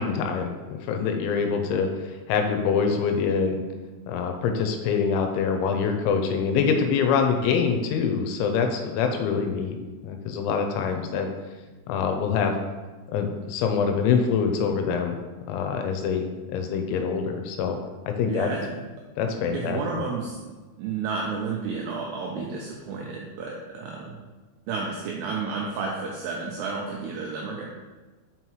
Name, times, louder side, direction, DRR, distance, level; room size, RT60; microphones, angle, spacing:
voice 1, 0.0-3.6 4.1-9.8 10.0-11.3 11.9-12.5 13.1-15.2 15.5-17.8 18.1-18.5 19.2-20.0, left 6 dB, 85° left, 4 dB, 2.9 m, -25 dB
voice 2, 18.3-18.8 19.5-24.2 24.7-27.7, right 4 dB, 90° right, -1 dB, 2.4 m, -31 dB
5.9 x 5.5 x 3.0 m, 1.3 s
omnidirectional pair, 5.5 m